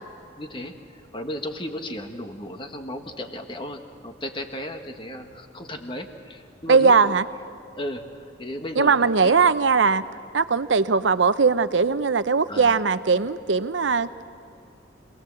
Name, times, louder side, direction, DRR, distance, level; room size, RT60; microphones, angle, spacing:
voice 1, 0.4-7.0 7.8-9.4 12.5-12.8, left 1 dB, 25° left, 6 dB, 1.5 m, -35 dB
voice 2, 6.7-7.2 8.8-10.0 10.3-14.1, right 5 dB, 70° right, 13 dB, 0.7 m, -19 dB
26.5 x 19.0 x 7.7 m, 2.7 s
head